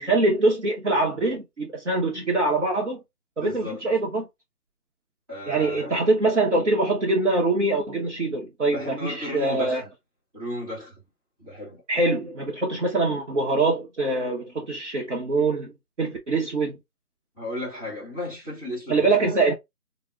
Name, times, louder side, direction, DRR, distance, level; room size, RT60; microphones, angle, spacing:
voice 1, 0.0-3.0 3.4-4.3 5.5-9.8 11.9-15.7 16.0-16.8 18.9-19.5, right 2 dB, 50° right, 0.9 m, -24 dB
voice 2, 3.4-3.8 5.3-5.9 8.7-9.9 10.3-11.0 11.4-11.8 17.4-19.3, left 1 dB, 20° right, 1.3 m, -34 dB
4.5 x 2.1 x 2.3 m
figure-of-eight pair, 170°, 46 cm